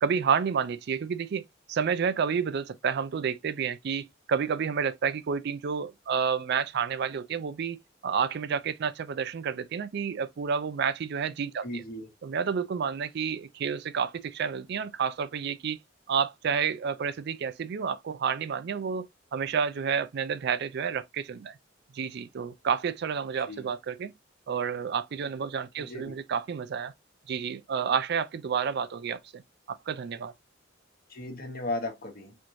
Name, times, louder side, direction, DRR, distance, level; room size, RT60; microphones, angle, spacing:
voice 1, 0.0-11.7 12.2-15.8 16.1-21.6 21.9-24.1 24.5-26.9 27.3-29.4 29.7-30.3, right 6 dB, 55° right, 0.4 m, -30 dB
voice 2, 11.6-12.1 23.5-23.7 25.8-26.2 31.1-32.4, left 2 dB, 50° left, 1.2 m, -36 dB
4.3 x 3.0 x 2.5 m
head